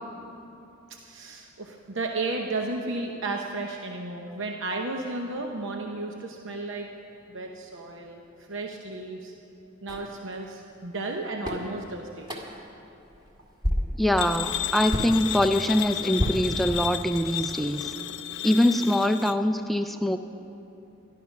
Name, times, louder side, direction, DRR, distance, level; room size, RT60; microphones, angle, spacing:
voice 1, 1.0-6.9 7.3-8.2 8.5-9.3 9.8-12.3, right 2 dB, 65° right, 2 dB, 0.8 m, -33 dB
sound 1, 9.9-10.1 11.0-11.1 11.4-11.7 12.2-12.7 13.1-13.3 13.6-14.1 14.9-15.2 16.2-17.1, left 1 dB, 25° right, 2.1 m, -29 dB
voice 2, 14.0-17.9 18.4-20.2, left 1 dB, ahead, 7 dB, 0.3 m, -23 dB
sound 2, 14.2-19.4, left 12 dB, 60° left, 0.5 m, -33 dB
13.5 x 11.5 x 5.9 m, 2.9 s
head